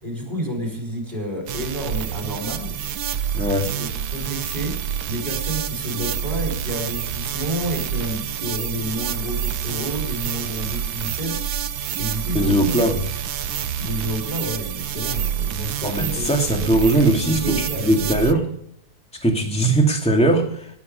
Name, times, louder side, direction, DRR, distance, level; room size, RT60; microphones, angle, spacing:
voice 1, 0.0-2.8 3.7-11.4 12.0-12.9 13.8-17.0 17.3-18.4, equal, 25° right, 1 dB, 5.1 m, -30 dB
sound 1, 1.5-18.3, right 9 dB, 85° right, 1.6 m, -28 dB
voice 2, 3.3-3.7 12.3-13.0 15.8-18.5 19.2-20.8, right 1 dB, 5° left, 2 dB, 2.4 m, -20 dB
18.0 x 8.8 x 5.5 m, 0.72 s
omnidirectional pair, 2.0 m